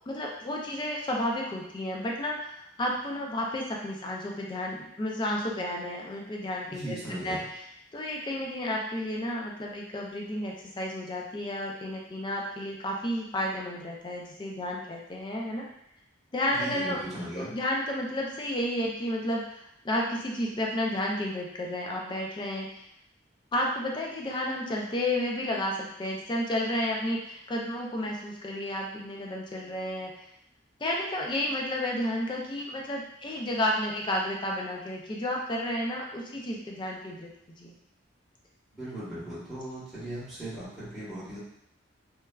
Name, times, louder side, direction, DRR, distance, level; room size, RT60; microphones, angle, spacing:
voice 1, 0.1-7.4 7.9-15.7 16.3-17.0 17.4-22.7 23.5-30.1 30.8-37.3 37.6-37.7, left 1 dB, 25° left, -1 dB, 0.3 m, -31 dB
voice 2, 6.7-7.4 16.5-17.5 38.7-41.4, right 1 dB, ahead, -13 dB, 1.0 m, -38 dB
3.1 x 2.2 x 2.2 m, 0.77 s
head